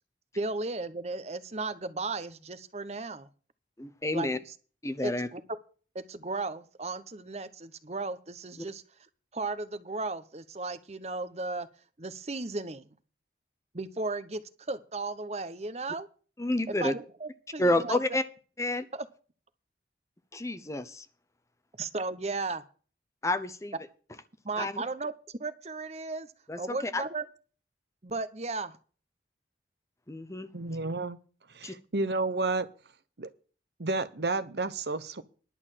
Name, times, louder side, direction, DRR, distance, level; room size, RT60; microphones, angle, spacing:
voice 1, 0.4-3.3 4.1-4.3 5.0-5.4 5.9-8.8 9.3-11.7 12.0-12.9 13.7-14.4 14.7-16.1 16.7-18.0 21.8-22.6 24.4-26.3 26.6-27.2 28.0-28.8, right 3 dB, 35° right, 14 dB, 0.9 m, -35 dB
voice 2, 3.8-4.4 4.8-5.3 16.4-16.9 17.6-18.2 18.6-18.8 20.3-21.1 23.2-23.8 24.6-24.8 26.5-27.0 30.1-30.5 31.6-31.7, left 1 dB, 15° left, 11 dB, 0.8 m, -29 dB
voice 3, 30.5-31.2 31.5-32.7 33.2-33.3 33.8-35.2, right 3 dB, 65° right, 13 dB, 0.9 m, -31 dB
11.0 x 6.6 x 7.5 m, 0.39 s
head